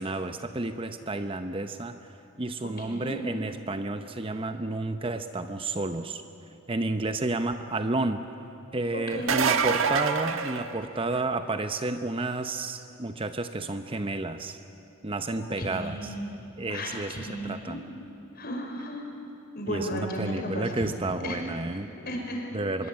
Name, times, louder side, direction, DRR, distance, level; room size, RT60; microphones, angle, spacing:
voice 1, 0.0-2.0 2.4-6.2 6.7-8.2 8.7-14.6 15.0-16.1 16.6-17.8 19.7-21.9 22.5-22.9, right 2 dB, 25° right, 9 dB, 0.7 m, -31 dB
voice 2, 2.9-3.3 9.1-9.4 15.3-16.3 16.7-17.8 18.4-19.0 19.5-20.9 21.2-21.4 22.0-22.4 22.8-22.9, equal, 45° left, 1 dB, 5.1 m, -34 dB
sound 1, 9.1-11.3 16.9-17.0 18.8-18.9, right 6 dB, 75° right, 1.3 m, -26 dB
25.0 x 22.5 x 8.8 m, 3.0 s
head